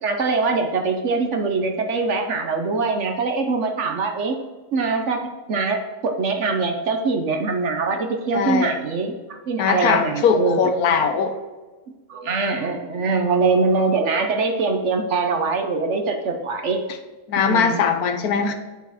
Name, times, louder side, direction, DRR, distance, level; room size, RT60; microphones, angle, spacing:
voice 1, 0.0-4.4 4.7-10.6 12.1-16.8 17.4-17.8 18.4-18.5, right 4 dB, 55° right, 5 dB, 1.1 m, -23 dB
voice 2, 8.3-8.8 9.6-11.4 17.3-18.5, left 6 dB, 80° left, 7 dB, 1.3 m, -20 dB
8.4 x 5.8 x 4.1 m, 1.2 s
omnidirectional pair, 1.6 m